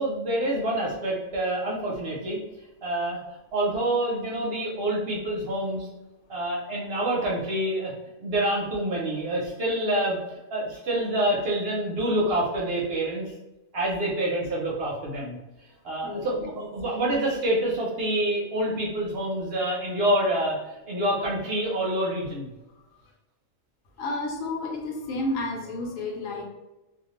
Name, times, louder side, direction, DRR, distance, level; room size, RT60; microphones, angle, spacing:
voice 1, 0.0-2.4 2.8-3.2 3.5-5.9 6.3-7.9 8.2-10.2 10.5-13.3 13.7-15.4 15.8-22.5, right 1 dB, 60° right, -3 dB, 0.7 m, -27 dB
voice 2, 16.0-16.5 24.0-26.4, left 2 dB, 85° left, 1 dB, 1.0 m, -31 dB
2.5 x 2.3 x 2.9 m, 1.0 s
omnidirectional pair, 1.4 m